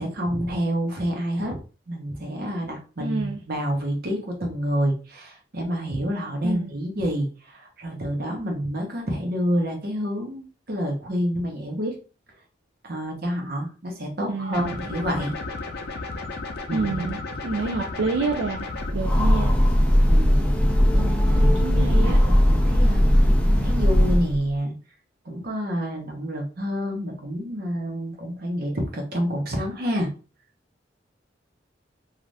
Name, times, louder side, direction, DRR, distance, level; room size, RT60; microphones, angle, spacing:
voice 1, 0.0-1.6 1.9-11.9 12.8-15.3 16.7-17.1 20.1-23.0 23.6-24.8 25.2-30.1, equal, 55° right, 0.8 m, -28 dB
voice 2, 3.0-3.4 6.4-6.7 14.2-14.9 16.7-19.5 21.3-22.2, right 3 dB, 80° right, 0.4 m, -28 dB
sound 1, 14.5-18.9, left 3 dB, 60° left, 0.6 m, -33 dB
Train, 18.8-24.5, equal, 5° left, 0.4 m, -18 dB
2.6 x 2.4 x 3.2 m
head